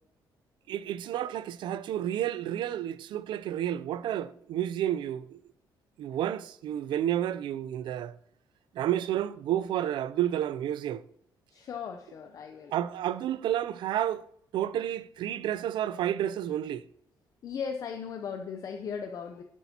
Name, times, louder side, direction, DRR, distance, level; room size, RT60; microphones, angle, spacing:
voice 1, 0.7-5.4 6.0-8.2 8.7-11.0 12.7-14.2 14.5-16.8, right 11 dB, 80° right, 0.4 m, -30 dB
voice 2, 11.5-12.8 17.4-19.4, left 6 dB, 45° left, 0.7 m, -37 dB
11.5 x 8.2 x 2.9 m
cardioid pair, 170°, 8 cm